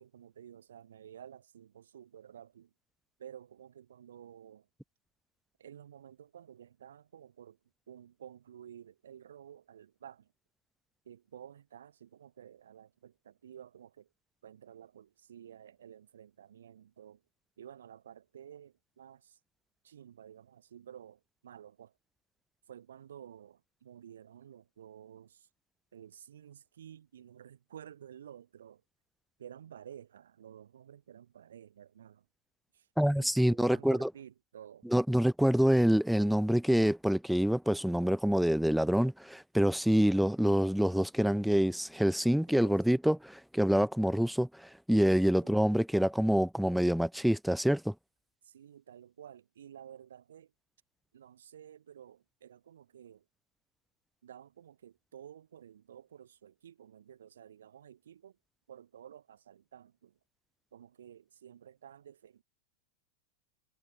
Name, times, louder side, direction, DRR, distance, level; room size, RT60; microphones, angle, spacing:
voice 1, 0.0-2.7 3.2-4.7 5.6-7.6 7.9-10.3 11.0-14.1 14.4-17.2 17.6-19.4 19.8-21.9 22.7-25.5 25.9-28.8 29.4-32.3 32.7-32.9 33.2-34.9 42.5-42.9 45.4-45.6 48.4-50.5 51.1-53.2 54.2-58.4 58.7-60.2 60.7-62.4, right 9 dB, 65° right, 7.4 m, -52 dB
voice 2, 33.0-34.1 34.9-47.9, equal, ahead, 1.8 m, -26 dB
figure-of-eight pair, 90°, 0 cm